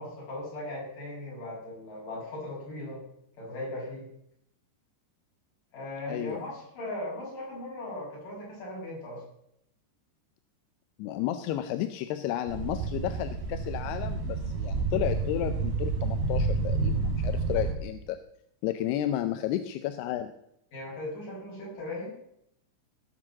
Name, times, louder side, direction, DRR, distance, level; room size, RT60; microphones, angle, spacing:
voice 1, 0.0-3.0 3.4-4.1 5.7-9.2 20.7-22.1, left 1 dB, 45° left, -4 dB, 8.0 m, -38 dB
voice 2, 6.1-6.4 11.0-18.2 18.6-20.3, left 12 dB, 80° left, 9 dB, 2.5 m, -32 dB
sound 1, 12.5-17.7, right 3 dB, 75° right, 3.8 m, -29 dB
18.5 x 6.6 x 7.3 m, 0.75 s
omnidirectional pair, 5.0 m